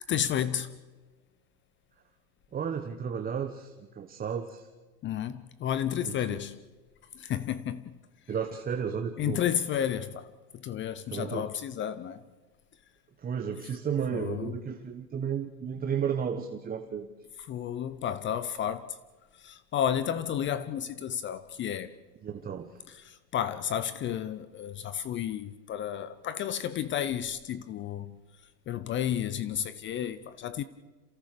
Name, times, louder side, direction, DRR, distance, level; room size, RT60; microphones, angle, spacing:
voice 1, 0.1-0.7 5.0-6.6 7.1-8.0 9.2-10.3 10.5-12.2 14.1-14.5 17.5-19.0 19.4-21.9 22.9-28.2 28.7-30.6, left 10 dB, 25° left, 0.7 m, -32 dB
voice 2, 2.5-4.7 6.0-6.4 8.3-9.4 11.1-11.5 13.2-17.1 22.2-22.8, right 7 dB, 15° right, 1.2 m, -33 dB
28.0 x 17.0 x 6.8 m
hypercardioid pair, 120°, 50 cm